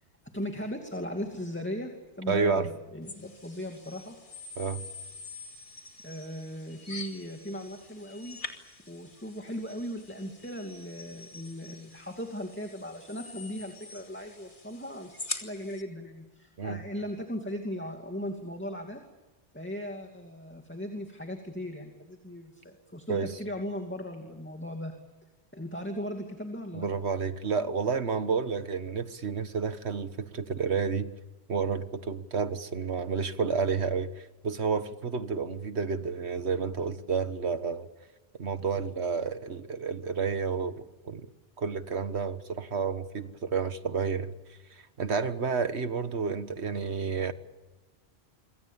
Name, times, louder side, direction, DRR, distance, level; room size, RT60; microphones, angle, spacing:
voice 1, 0.3-4.1 6.0-8.4 8.9-19.0 19.5-24.9 25.5-26.9, equal, 10° left, 2.6 m, -38 dB
voice 2, 2.3-2.7 4.6-4.8 16.6-16.8 23.1-23.3 26.7-31.1 31.5-37.9 38.4-41.3 41.6-44.3 45.0-47.3, right 5 dB, 80° right, 1.7 m, -30 dB
sound 1, 3.1-15.8, left 3 dB, 50° left, 2.7 m, -45 dB
27.0 x 23.5 x 7.2 m
omnidirectional pair, 1.1 m